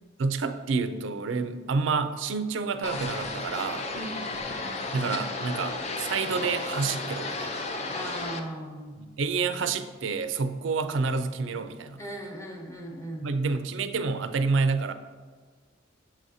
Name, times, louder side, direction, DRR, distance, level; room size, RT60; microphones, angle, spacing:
voice 1, 0.2-3.9 4.9-7.6 9.0-12.0 13.2-14.9, right 4 dB, 80° right, 10 dB, 0.4 m, -28 dB
sound 1, 2.8-8.4, left 3 dB, 35° left, 0.4 m, -33 dB
voice 2, 3.9-4.3 7.9-8.9 12.0-13.3, right 1 dB, 15° left, -1 dB, 0.8 m, -38 dB
7.5 x 4.9 x 2.7 m, 1.5 s
head